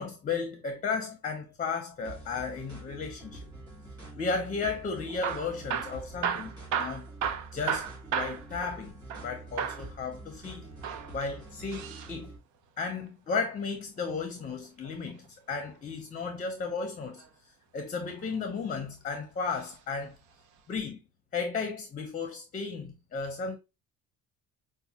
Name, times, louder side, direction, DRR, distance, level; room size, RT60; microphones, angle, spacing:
voice 1, 0.0-3.4 4.1-7.1 7.5-10.7 11.1-12.3 12.8-17.2 17.7-20.2 20.7-21.0 21.3-23.6, left 4 dB, 25° left, 0.6 m, -34 dB
sound 1, 2.0-12.4, right 2 dB, 10° right, 2.1 m, -46 dB
Hammer / Drill, 5.1-9.3 9.6-9.9 10.7-12.1 13.9-15.1 16.8-17.3 18.0-18.8 19.5-19.8 20.1-20.2 20.8-20.9, right 8 dB, 70° right, 0.5 m, -35 dB
5.2 x 2.2 x 2.8 m
cardioid pair, 130°, 31 cm